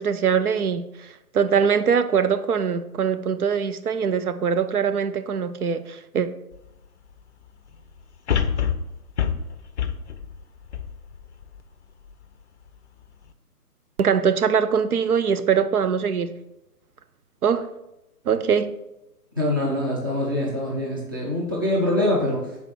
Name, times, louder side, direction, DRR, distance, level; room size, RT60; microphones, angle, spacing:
voice 1, 0.0-6.3 14.0-16.4 17.4-17.7 18.3-18.7, right 7 dB, 70° right, 0.6 m, -22 dB
sound 1, 6.5-6.6 8.3-11.6 12.1-12.2, left 7 dB, 50° left, 0.5 m, -26 dB
voice 2, 19.4-22.4, left 1 dB, 15° right, 0.5 m, -24 dB
5.7 x 4.1 x 4.9 m
figure-of-eight pair, 135°, 47 cm